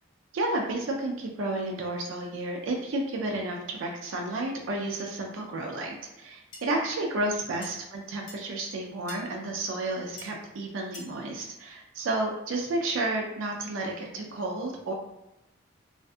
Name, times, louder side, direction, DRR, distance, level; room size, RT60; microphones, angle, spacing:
voice 1, 0.3-14.9, right 2 dB, 75° right, 1 dB, 0.4 m, -31 dB
sound 1, 6.5-6.6 7.6-7.7 8.3-8.4 9.1-9.2 10.2-10.3 10.9-11.1, left 2 dB, 60° left, 0.6 m, -43 dB
2.5 x 2.5 x 2.3 m, 0.91 s
head